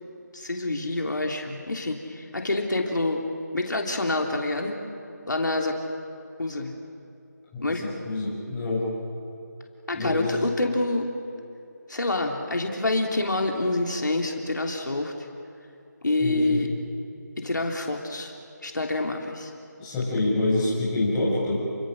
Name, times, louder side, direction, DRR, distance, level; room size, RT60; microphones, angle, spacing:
voice 1, 0.3-3.2 3.5-4.8 5.3-5.8 6.4-6.7 7.6-7.9 9.9-11.1 11.9-15.3 16.0-16.7 17.4-18.3 18.6-19.5, left 2 dB, 75° left, 2 dB, 3.2 m, -27 dB
voice 2, 7.5-8.8 9.9-10.2 16.2-16.6 19.8-21.5, left 2 dB, 10° left, -7 dB, 6.1 m, -26 dB
29.5 x 24.0 x 6.5 m, 2.7 s
figure-of-eight pair, 165°, 10 cm